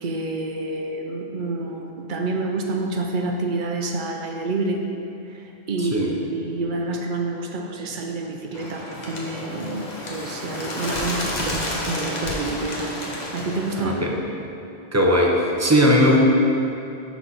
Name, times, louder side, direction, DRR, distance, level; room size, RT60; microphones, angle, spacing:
voice 1, 0.0-4.9 5.2-13.0 13.3-14.1, right 2 dB, 60° right, 2 dB, 0.7 m, -28 dB
voice 2, 5.8-6.2 13.8-14.1 14.9-16.2, equal, 20° right, -1 dB, 0.6 m, -18 dB
Bird, 8.5-13.8, left 1 dB, 45° left, 1.1 m, -30 dB
5.9 x 3.9 x 5.8 m, 2.7 s
omnidirectional pair, 1.1 m